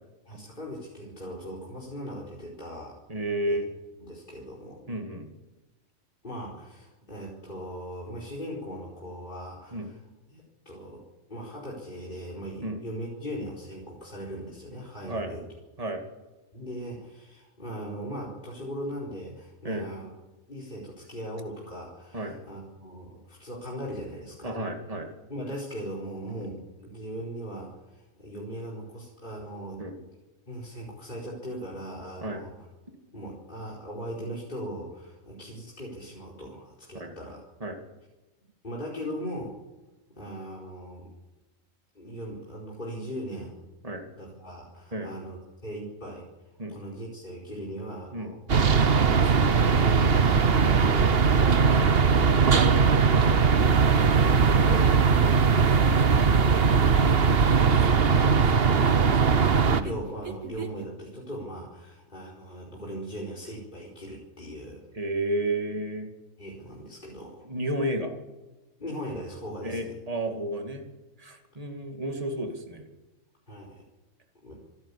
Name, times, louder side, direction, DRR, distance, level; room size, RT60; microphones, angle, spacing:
voice 1, 0.2-3.0 3.5-3.6 4.0-4.8 6.2-10.0 10.3-15.4 16.5-20.1 20.5-24.6 25.3-29.8 30.5-32.5 33.1-37.4 38.6-39.6 40.1-41.1 41.9-43.6 44.1-45.4 45.6-46.3 46.7-48.4 49.0-51.1 51.7-55.9 57.5-58.5 59.7-64.8 66.4-67.5 68.8-69.9 73.5-73.8 74.4-74.6, equal, 35° left, -4 dB, 4.9 m, -39 dB
voice 2, 3.1-3.7 4.9-5.3 9.7-9.9 12.6-12.8 15.1-15.3 15.8-16.0 19.6-19.9 22.1-22.4 24.4-25.1 29.8-29.9 32.2-32.4 36.9-37.1 37.6-37.8 43.8-44.0 44.9-45.1 46.6-46.8 48.1-48.3 50.6-50.8 55.2-55.4 64.9-66.1 67.5-68.1 69.6-70.8 71.2-72.9, right 1 dB, 25° right, 4 dB, 2.6 m, -32 dB
sound 1, 48.5-59.8, right 5 dB, 50° right, 1.3 m, -20 dB
sound 2, 55.6-60.9, right 5 dB, 70° right, 2.3 m, -41 dB
26.5 x 12.5 x 8.6 m, 1.1 s
omnidirectional pair, 1.4 m